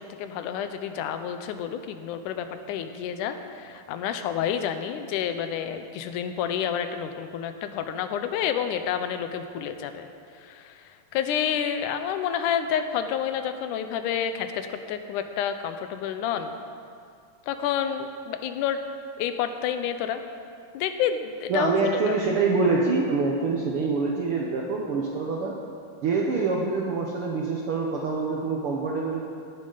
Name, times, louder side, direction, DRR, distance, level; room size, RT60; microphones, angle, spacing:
voice 1, 0.0-10.1 10.3-16.5 17.5-18.8 19.2-20.2 20.7-21.8 22.0-22.2, left 8 dB, 85° left, 8 dB, 2.1 m, -29 dB
voice 2, 21.5-25.6 26.0-29.2, right 4 dB, 70° right, -1 dB, 1.3 m, -25 dB
16.5 x 8.9 x 3.9 m, 2.3 s
omnidirectional pair, 3.6 m